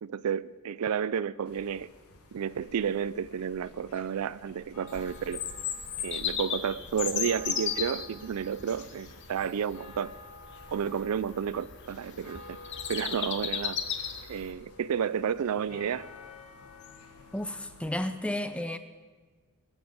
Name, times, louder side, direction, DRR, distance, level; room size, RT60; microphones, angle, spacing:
voice 1, 0.0-1.9 2.3-5.4 6.0-10.1 10.7-12.6 12.9-13.8 14.3-16.1, right 7 dB, 85° right, 18 dB, 0.4 m, -31 dB
sound 1, 1.4-18.1, left 2 dB, 85° left, 1.7 m, -51 dB
Bird vocalization bird call bird song, 4.9-14.5, left 8 dB, 55° left, 1.2 m, -36 dB
voice 2, 17.3-18.8, left 1 dB, 5° left, 10 dB, 0.4 m, -32 dB
20.5 x 7.3 x 7.9 m, 1.4 s
head